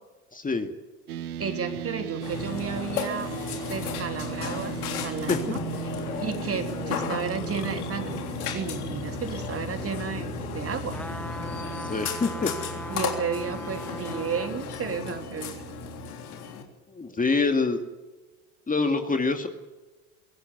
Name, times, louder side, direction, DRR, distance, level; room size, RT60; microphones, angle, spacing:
voice 1, 0.3-0.7 5.3-5.4 11.9-12.5 16.9-17.8 18.7-19.5, left 4 dB, 20° left, 6 dB, 2.3 m, -25 dB
sound 1, 1.1-16.1, right 10 dB, 85° right, 1.0 m, -38 dB
voice 2, 1.4-3.3 3.6-5.6 6.2-8.2 8.5-11.0 12.9-15.6, right 6 dB, 30° right, 6 dB, 3.5 m, -32 dB
Burping eructation, 2.2-16.6, left 7 dB, 80° left, 3.5 m, -34 dB
sound 2, 10.9-14.6 15.1-15.2, equal, 5° left, 1.2 m, -39 dB
22.5 x 17.5 x 9.6 m, 1.2 s
hypercardioid pair, 75°, 44 cm